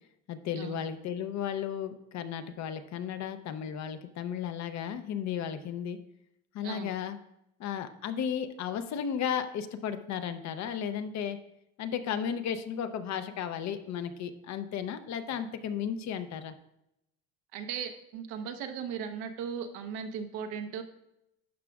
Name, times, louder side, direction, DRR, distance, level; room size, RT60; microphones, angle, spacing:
voice 1, 0.3-6.0 6.5-7.2 7.6-11.4 11.8-16.5, left 8 dB, 50° left, 10 dB, 0.7 m, -34 dB
voice 2, 17.5-20.8, right 7 dB, 90° right, 7 dB, 1.0 m, -37 dB
11.0 x 6.0 x 2.4 m, 0.83 s
cardioid pair, 130°, 36 cm